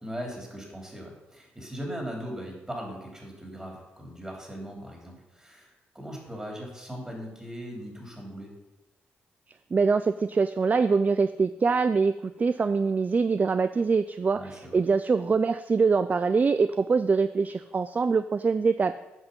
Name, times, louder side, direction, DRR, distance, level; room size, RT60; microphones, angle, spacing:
voice 1, 0.0-5.7 6.0-8.5 14.3-14.8, equal, 15° right, 0 dB, 3.5 m, -39 dB
voice 2, 9.7-18.9, right 4 dB, 35° right, 13 dB, 0.3 m, -24 dB
8.0 x 5.8 x 5.3 m, 0.99 s
supercardioid pair, 50°, 5 cm